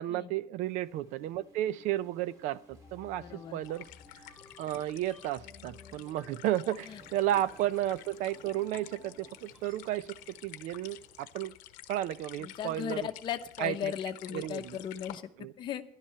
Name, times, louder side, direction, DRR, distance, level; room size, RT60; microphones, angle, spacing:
voice 1, 0.0-3.9 4.6-10.1 10.4-11.6 11.9-13.0 13.6-13.9 14.3-14.8 15.4-15.5, right 13 dB, 70° right, 18 dB, 0.5 m, -33 dB
sound 1, 0.6-11.2, right 1 dB, 25° right, 3.3 m, -62 dB
sound 2, 1.3-9.8, left 3 dB, ahead, 2.4 m, -56 dB
voice 2, 3.2-3.6 6.9-7.0 7.3-7.4 12.4-15.2 15.6-15.8, left 9 dB, 35° left, 7 dB, 0.8 m, -37 dB
sound 3, 3.6-15.2, left 15 dB, 90° left, 0.8 m, -51 dB
13.5 x 11.5 x 5.7 m, 0.71 s
cardioid pair, 170°, 13 cm